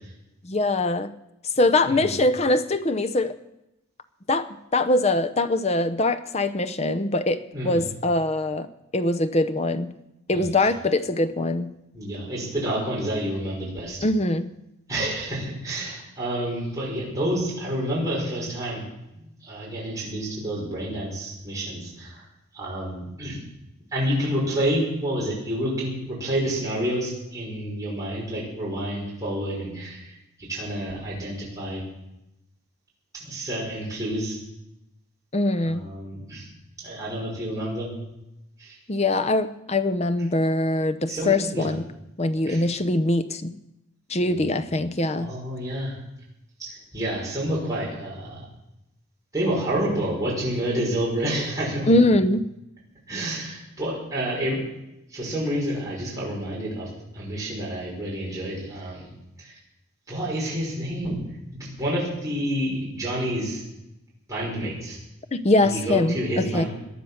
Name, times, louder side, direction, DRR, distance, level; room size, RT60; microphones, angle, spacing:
voice 1, 0.4-1.1 1.6-3.3 4.3-4.5 4.7-9.9 10.3-11.7 14.0-14.5 35.3-35.8 38.9-41.8 42.2-43.5 44.1-45.3 51.9-52.4 65.3-66.7, left 2 dB, 30° left, 11 dB, 0.7 m, -22 dB
voice 2, 7.5-7.9 10.3-10.5 11.9-14.0 14.9-18.9 19.1-22.2 22.5-23.4 23.9-31.8 33.1-34.4 35.6-36.5 36.8-37.9 38.6-38.8 41.1-41.7 42.5-42.6 44.2-44.6 45.2-45.9 46.6-48.5 49.3-51.9 53.1-54.6 55.1-56.9 57.1-59.1 59.4-59.6 60.1-61.2 61.6-63.6 64.3-65.0 65.6-66.7, right 1 dB, 15° right, -5 dB, 5.8 m, -29 dB
18.5 x 11.0 x 6.5 m, 0.88 s
head